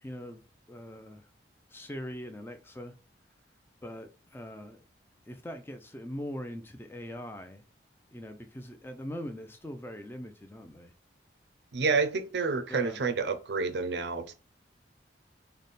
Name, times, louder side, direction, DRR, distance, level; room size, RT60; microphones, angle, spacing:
voice 1, 0.0-1.3 1.7-2.9 3.8-4.8 5.3-7.6 8.1-10.9 12.7-13.0, equal, 10° left, 0.4 m, -42 dB
voice 2, 11.7-14.3, right 4 dB, 65° right, 0.5 m, -29 dB
3.4 x 2.1 x 4.0 m
head